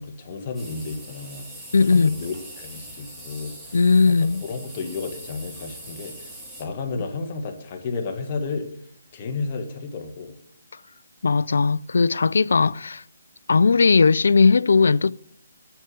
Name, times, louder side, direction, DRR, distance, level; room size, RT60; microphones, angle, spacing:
voice 1, 0.0-1.5 1.9-3.8 4.1-6.3 6.6-8.7 9.1-10.3, left 4 dB, 35° left, 1.6 m, -32 dB
sound 1, 0.5-6.6, right 1 dB, 5° right, 2.7 m, -42 dB
voice 2, 1.7-2.2 3.7-4.4 11.2-13.0 13.5-15.1, left 4 dB, 70° left, 0.3 m, -18 dB
8.9 x 5.7 x 7.7 m
figure-of-eight pair, 150°, 0 cm